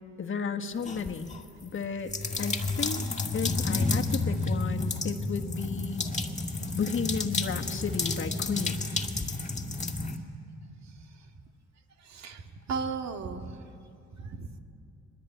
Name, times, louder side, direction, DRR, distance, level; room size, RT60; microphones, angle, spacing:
voice 1, 0.0-1.3 1.6-2.1 2.4-3.0 3.3-6.0 6.7-8.9, left 6 dB, 40° left, 4 dB, 1.6 m, -33 dB
sound 1, 0.8-1.4 2.1-10.2, left 3 dB, 25° left, 1.9 m, -31 dB
voice 2, 12.0-13.6 14.1-14.6, right 5 dB, 65° right, 5 dB, 2.0 m, -36 dB
23.5 x 20.5 x 9.3 m, 2.5 s
cardioid pair, 90°, 30 cm